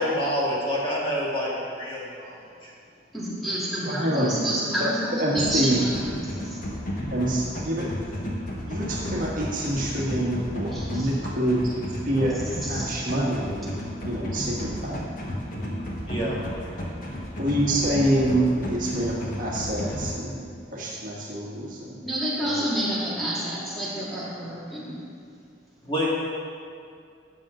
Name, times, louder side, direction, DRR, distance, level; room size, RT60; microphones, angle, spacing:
voice 1, 0.0-2.7 16.1-16.4 25.8-26.1, equal, 25° left, -6 dB, 1.9 m, -27 dB
voice 2, 3.1-6.6 10.7-11.1 12.6-13.1 22.0-25.0, right 1 dB, ahead, -8 dB, 2.1 m, -29 dB
voice 3, 3.8-4.3 4.8-4.9 5.2-5.8 7.1-7.9 8.6-11.7 12.0-12.3 12.7-13.7 14.0-15.0 17.4-22.1 22.4-22.5, right 1 dB, 45° right, -4 dB, 1.5 m, -26 dB
sound 1, 5.4-20.1, equal, 45° left, 1.3 m, -33 dB
13.0 x 7.4 x 3.8 m, 2.3 s
head